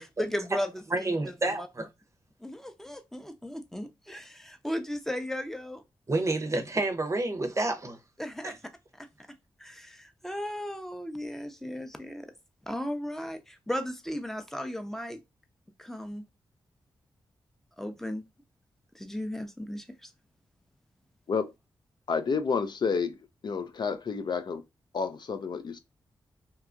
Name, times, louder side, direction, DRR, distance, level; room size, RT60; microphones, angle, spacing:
voice 1, 0.2-1.7 2.4-5.8 8.2-8.6 9.0-9.1 9.6-12.3 12.7-15.2 15.8-16.3 17.8-18.2 18.9-20.1, equal, 5° left, 0.6 m, -36 dB
voice 2, 0.9-1.9 6.1-8.0 8.4-8.5, right 2 dB, 35° right, 0.6 m, -29 dB
voice 3, 22.1-23.1 23.4-24.6 24.9-25.8, left 5 dB, 55° left, 0.4 m, -30 dB
2.8 x 2.3 x 2.4 m
cardioid pair, 55°, 9 cm